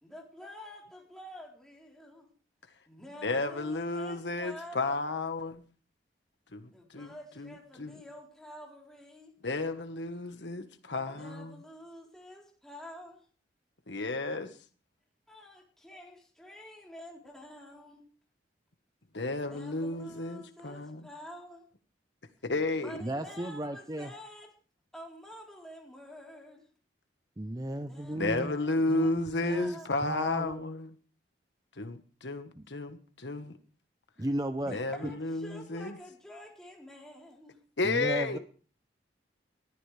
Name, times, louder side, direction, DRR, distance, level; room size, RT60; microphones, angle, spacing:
voice 1, 0.0-2.3 2.9-5.0 6.7-9.3 11.0-13.3 15.3-18.0 19.4-21.7 22.8-24.5 24.9-26.7 27.8-29.1 29.4-29.9 34.7-37.6, equal, 5° left, 3.8 m, -48 dB
voice 2, 3.2-5.6 6.5-7.1 7.4-7.5 7.8-7.9 9.4-11.5 13.9-14.5 19.1-21.0 22.4-22.9 28.2-30.9 31.8-33.5 34.7-35.9 37.8-38.4, left 2 dB, 75° left, 1.4 m, -32 dB
voice 3, 23.0-24.1 27.4-28.5 28.9-30.6 32.5-32.7 34.2-34.8 35.0-35.1 37.8-38.4, right 1 dB, 20° right, 0.7 m, -34 dB
20.5 x 14.0 x 3.4 m
head